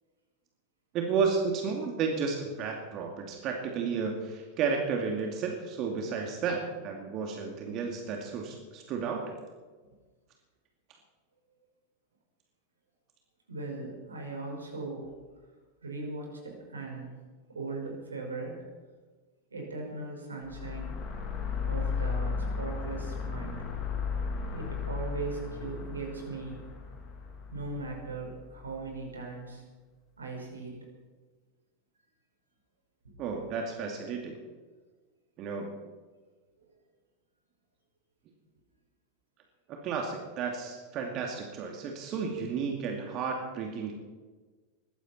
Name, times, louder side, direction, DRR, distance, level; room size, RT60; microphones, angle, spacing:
voice 1, 0.9-9.3 33.2-34.4 35.4-35.8 39.7-43.9, right 5 dB, 40° right, 2 dB, 2.5 m, -32 dB
voice 2, 13.5-15.1 15.8-17.2 17.5-18.7 19.5-21.0 21.6-23.6 24.5-26.6 27.5-29.6 30.2-30.9, right 3 dB, 80° right, 0 dB, 5.3 m, -39 dB
sound 1, 20.4-28.8, left 5 dB, 35° left, 3.3 m, -35 dB
20.5 x 15.0 x 4.4 m, 1.4 s
figure-of-eight pair, 90°, 0 cm